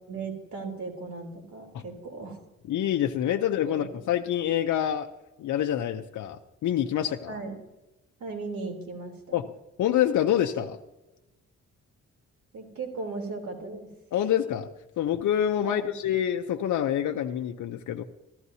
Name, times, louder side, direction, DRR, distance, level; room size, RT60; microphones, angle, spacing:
voice 1, 0.1-2.4 3.7-3.9 7.3-7.6 8.2-9.4 12.5-13.9 15.6-15.9, right 3 dB, 70° right, 1 dB, 3.4 m, -37 dB
voice 2, 2.7-5.1 5.4-7.3 9.3-9.5 9.8-10.8 14.1-14.7 15.0-18.0, left 10 dB, 75° left, 4 dB, 0.6 m, -26 dB
14.5 x 14.0 x 2.8 m, 1.0 s
cardioid pair, 130°, 30 cm